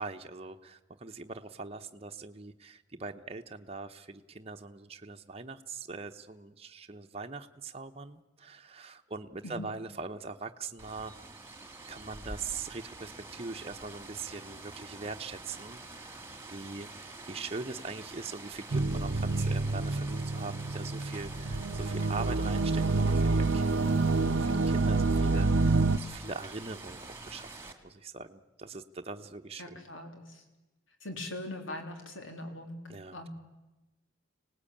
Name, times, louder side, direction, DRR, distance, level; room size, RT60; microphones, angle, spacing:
voice 1, 0.0-11.1 11.9-16.2 16.5-29.8 32.9-33.3, right 4 dB, 30° right, 5 dB, 0.9 m, -42 dB
Rain, 10.8-27.7, right 2 dB, 15° right, 1.9 m, -46 dB
sound 1, 18.7-26.0, right 3 dB, 75° right, 0.7 m, -27 dB
voice 2, 29.6-30.4 31.0-32.8 33.1-33.3, left 1 dB, 85° left, 4 dB, 3.5 m, -41 dB
25.5 x 18.5 x 8.7 m, 1.1 s
head